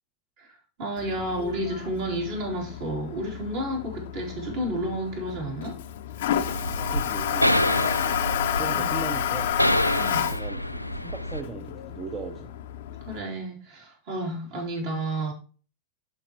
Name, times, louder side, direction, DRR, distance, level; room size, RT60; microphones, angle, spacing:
voice 1, 0.8-5.8 8.5-8.9 9.9-10.2 13.0-15.3, right 1 dB, 50° right, 3.3 m, -31 dB
Toilet flush, 1.0-13.2, left 11 dB, 55° left, 0.7 m, -31 dB
sound 1, 6.5-11.4, left 1 dB, 90° left, 0.3 m, -27 dB
voice 2, 6.7-9.5 10.1-10.6 10.9-12.5, right 4 dB, 25° right, 1.0 m, -38 dB
11.0 x 5.0 x 3.0 m
figure-of-eight pair, 90°, 0 cm